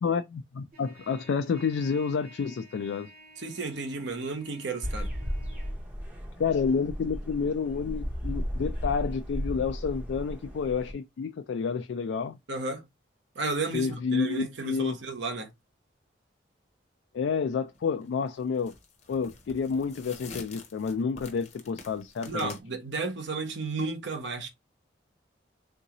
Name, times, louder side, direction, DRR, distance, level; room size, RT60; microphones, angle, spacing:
voice 1, 0.0-3.1 6.4-12.4 13.7-15.0 17.1-18.7 19.1-22.5, left 5 dB, 75° left, 0.3 m, -29 dB
Trumpet, 0.7-5.8, right 2 dB, 45° right, 1.1 m, -53 dB
voice 2, 3.4-5.1 12.5-12.9 13.3-15.5 22.2-24.5, right 3 dB, 70° right, 0.9 m, -33 dB
sound 1, 4.8-10.9, equal, 5° right, 0.6 m, -35 dB
sound 2, 17.7-18.0 18.6-22.6, left 3 dB, 35° left, 0.7 m, -47 dB
3.7 x 2.7 x 2.9 m
head